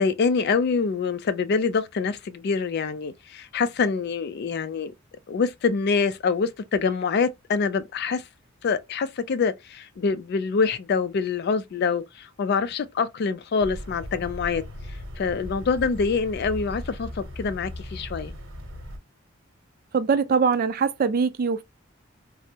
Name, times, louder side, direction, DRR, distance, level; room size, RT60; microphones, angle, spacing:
voice 1, 0.0-4.9 5.3-8.2 8.6-14.6 15.2-18.3, left 5 dB, 55° left, 0.4 m, -25 dB
sound 1, 13.6-19.0, left 1 dB, 65° right, 0.9 m, -38 dB
voice 2, 19.9-21.6, right 5 dB, 45° right, 0.4 m, -22 dB
3.3 x 2.0 x 2.7 m
head